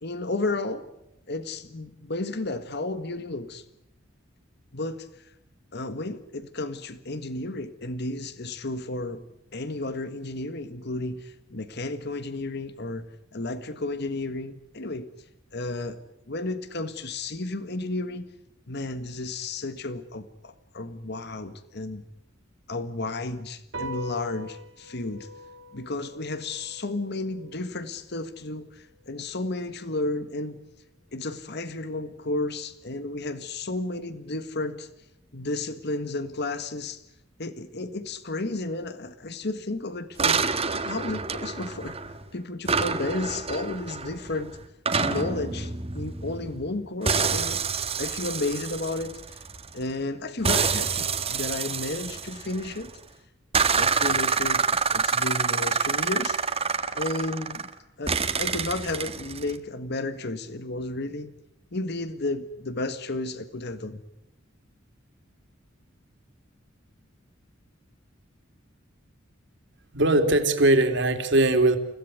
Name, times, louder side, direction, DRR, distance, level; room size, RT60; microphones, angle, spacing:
voice 1, 0.0-0.9 1.3-3.6 4.7-5.3 5.7-9.2 9.5-15.1 15.5-16.0 16.3-18.3 18.7-22.0 22.7-25.3 25.7-30.6 31.1-34.9 35.3-37.0 37.4-40.4 40.7-44.6 45.0-47.6 48.0-49.4 49.7-52.9 53.8-56.4 56.9-57.7 58.0-61.3 61.7-64.0, left 2 dB, 55° left, 11 dB, 1.6 m, -32 dB
sound 1, 23.7-30.5, left 1 dB, 80° right, 4.3 m, -43 dB
sound 2, 40.2-42.2 42.7-46.7 47.1-49.8 50.4-52.9 53.5-57.7 58.1-59.5, right 5 dB, 30° right, 1.8 m, -27 dB
voice 2, 69.9-71.8, right 2 dB, 65° right, 6 dB, 3.4 m, -20 dB
30.0 x 17.0 x 9.6 m, 0.86 s
head